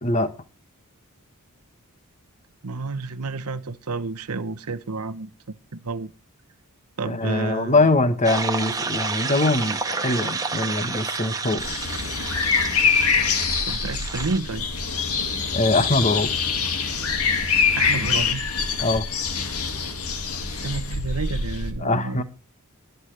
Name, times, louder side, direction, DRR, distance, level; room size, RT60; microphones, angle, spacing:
voice 1, 2.6-5.3 5.7-6.1 7.0-7.7 13.7-14.7 17.7-18.5 20.5-22.2, right 3 dB, 90° right, 0.9 m, -30 dB
voice 2, 7.0-11.7 15.5-16.3 18.8-19.0 21.8-22.2, left 2 dB, 35° left, 1.3 m, -22 dB
sound 1, 8.2-14.4, right 4 dB, 15° right, 1.3 m, -30 dB
sound 2, 11.6-21.7, left 5 dB, 75° left, 2.0 m, -24 dB
22.5 x 8.1 x 3.3 m
head